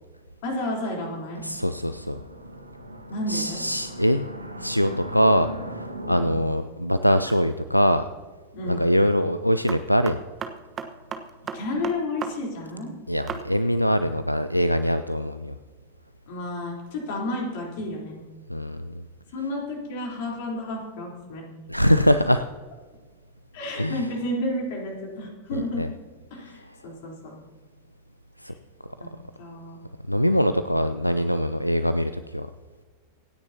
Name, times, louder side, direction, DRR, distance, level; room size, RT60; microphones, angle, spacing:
voice 1, 0.4-1.4 3.1-3.6 6.1-6.5 8.5-8.9 11.5-12.9 16.3-18.2 19.3-21.4 23.5-25.9 26.3-27.3 29.0-29.1 29.4-29.8, left 1 dB, 50° left, -1 dB, 3.7 m, -31 dB
voice 2, 1.4-2.2 3.3-4.3 4.6-5.5 5.7-8.0 8.7-10.2 13.1-15.5 18.5-19.0 21.7-22.4 23.8-24.0 25.5-25.9 28.4-28.5 30.1-32.5, equal, 90° left, 11 dB, 0.4 m, -23 dB
sound 1, 1.4-6.4, equal, 85° right, 1.1 m, -38 dB
sound 2, 7.3-7.6 9.7-12.3 12.6-12.7 13.3-13.4, right 6 dB, 25° right, 1.2 m, -34 dB
26.0 x 9.8 x 2.9 m, 1.4 s
figure-of-eight pair, 90°, 0 cm